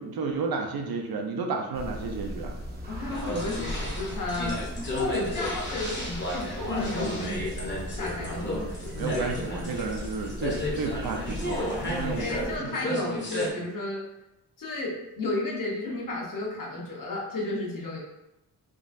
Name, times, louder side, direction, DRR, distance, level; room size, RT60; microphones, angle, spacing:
voice 1, 0.0-2.6 8.9-12.8, right 4 dB, 65° right, 2 dB, 0.6 m, -32 dB
sound 1, 1.7-12.6, equal, 25° right, 0.6 m, -38 dB
voice 2, 2.9-4.6 4.9-9.0 12.0-14.0 14.6-18.0, left 2 dB, 55° left, -4 dB, 1.0 m, -33 dB
sound 2, 3.1-13.5, left 1 dB, 30° left, 0.8 m, -33 dB
3.7 x 2.4 x 2.5 m, 0.91 s
wide cardioid pair, 135°, 39 cm